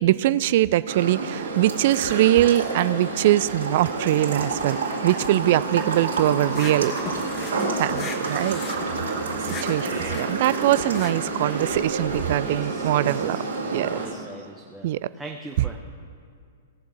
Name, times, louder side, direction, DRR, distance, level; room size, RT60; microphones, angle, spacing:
voice 1, 0.0-4.8 5.0-6.9 7.8-8.6 9.4-13.4 13.7-14.0 14.8-15.1, right 14 dB, 50° right, 18 dB, 0.3 m, -22 dB
sound 1, 0.9-14.1, right 3 dB, 65° right, 2.5 m, -29 dB
sound 2, 6.5-12.2, left 5 dB, 25° left, 1.0 m, -37 dB
voice 2, 12.4-15.8, right 2 dB, 5° right, 1 dB, 0.8 m, -43 dB
18.0 x 7.0 x 5.0 m, 2.2 s
figure-of-eight pair, 105°, 0 cm